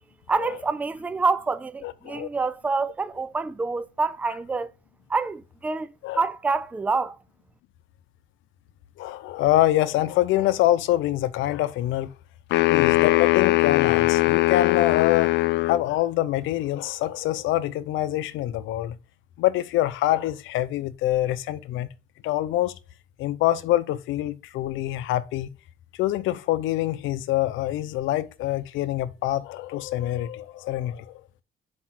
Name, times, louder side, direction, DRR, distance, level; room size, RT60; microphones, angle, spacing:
voice 1, 0.3-4.7 5.1-7.2, right 4 dB, 5° right, 0.4 m, -27 dB
voice 2, 1.8-2.3 6.0-6.2 9.0-12.1 12.7-15.3 15.6-19.0 19.4-21.9 22.2-22.7 23.2-25.5 26.0-31.2, left 14 dB, 85° left, 0.8 m, -25 dB
sound 1, 12.5-15.8, left 17 dB, 65° left, 0.4 m, -20 dB
6.1 x 5.3 x 6.0 m
cardioid pair, 155°, 20 cm